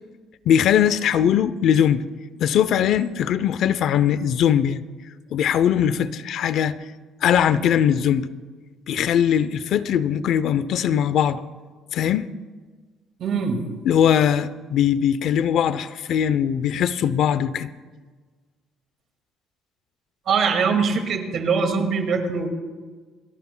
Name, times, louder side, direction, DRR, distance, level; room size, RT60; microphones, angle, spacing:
voice 1, 0.5-2.0 2.4-4.8 5.3-6.8 7.2-8.3 8.9-11.4 11.9-12.2 13.9-17.7, left 9 dB, 55° left, 0.5 m, -20 dB
voice 2, 13.2-13.6 20.3-22.5, right 5 dB, 50° right, 2.0 m, -22 dB
29.0 x 13.0 x 2.2 m
cardioid pair, 155°, 0 cm